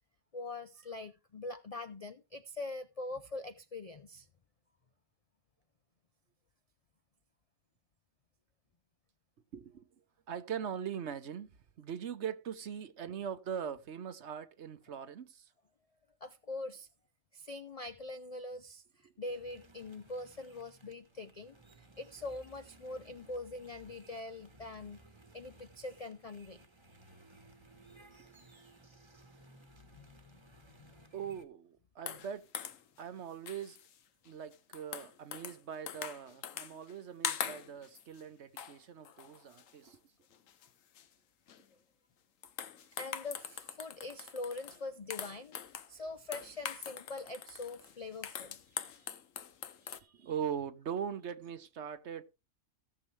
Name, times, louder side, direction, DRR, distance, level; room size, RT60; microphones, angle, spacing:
voice 1, 0.3-4.3 16.2-16.9 17.3-25.0 25.3-26.6 29.9-30.4 30.8-31.1 43.0-45.6 45.9-49.1 49.8-50.3, left 2 dB, 50° left, 0.4 m, -43 dB
voice 2, 9.5-9.9 10.3-15.5 31.1-32.5 33.0-33.8 34.2-40.0 50.1-52.2, right 8 dB, 60° right, 1.1 m, -41 dB
sound 1, 19.3-31.4, right 2 dB, 20° right, 1.2 m, -60 dB
sound 2, 32.1-33.0 33.5-34.0 34.3-35.6 35.9-37.0 37.2-38.2 38.6-38.8 39.1-39.9 40.3-40.7 41.0-41.1 41.5-41.7 42.4-44.8 45.1-45.9 46.3-50.0, left 8 dB, 75° left, 1.2 m, -43 dB
17.0 x 6.8 x 3.2 m
omnidirectional pair, 1.4 m